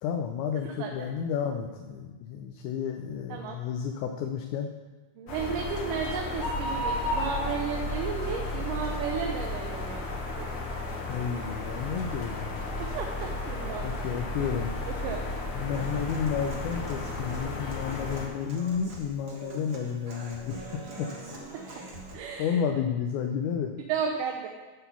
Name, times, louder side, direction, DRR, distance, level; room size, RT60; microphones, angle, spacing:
voice 1, 0.0-4.7 11.1-12.7 13.8-14.7 15.5-20.6 21.0-21.1 22.4-23.8, left 7 dB, 80° left, 4 dB, 1.9 m, -31 dB
voice 2, 5.2-10.0 10.4-10.5 12.8-13.9 14.9-15.2 22.1-22.6 23.9-24.5, right 6 dB, 90° right, 1 dB, 2.3 m, -33 dB
sound 1, 5.3-18.3, left 2 dB, 55° left, 1.7 m, -33 dB
Human voice / Acoustic guitar, 15.7-22.1, right 2 dB, 60° right, 0.8 m, -44 dB
11.0 x 3.9 x 6.9 m, 1.3 s
omnidirectional pair, 3.7 m